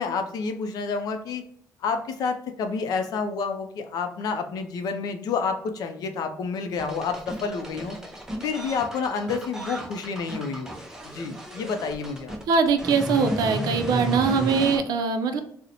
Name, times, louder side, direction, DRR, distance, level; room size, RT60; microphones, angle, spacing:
voice 1, 0.0-1.5 1.8-8.0 8.4-10.8 11.1-12.4, left 5 dB, 65° left, 7 dB, 0.4 m, -29 dB
sound 1, 6.8-14.8, right 1 dB, 10° right, 0.4 m, -33 dB
voice 2, 12.5-15.4, right 5 dB, 70° right, 7 dB, 0.4 m, -22 dB
3.9 x 2.0 x 2.8 m, 0.64 s
cardioid pair, 160°, 7 cm